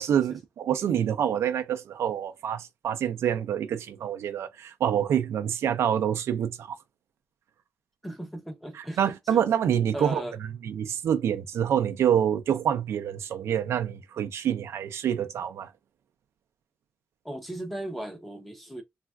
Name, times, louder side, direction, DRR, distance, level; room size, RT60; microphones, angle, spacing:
voice 1, 0.0-6.8 9.0-10.2 10.6-15.7, right 9 dB, 75° right, 0.4 m, -26 dB
voice 2, 8.0-9.0 9.3-9.4 9.9-10.4 17.2-18.8, right 1 dB, ahead, 0.7 m, -37 dB
3.3 x 2.3 x 2.3 m
wide cardioid pair, 165°, 5 cm